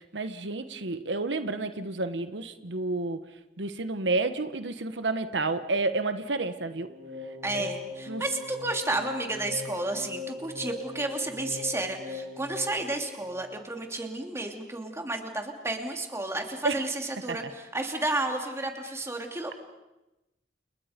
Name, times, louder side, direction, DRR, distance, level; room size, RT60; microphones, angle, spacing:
voice 1, 0.0-3.2 3.6-6.9 7.5-7.7 8.1-8.2 16.6-16.8, right 3 dB, 90° right, 9 dB, 1.2 m, -30 dB
sound 1, 6.7-13.9, left 4 dB, 60° right, 5.8 m, -40 dB
voice 2, 7.4-19.6, right 2 dB, 15° right, 3 dB, 2.9 m, -32 dB
30.0 x 29.0 x 5.2 m, 0.98 s
head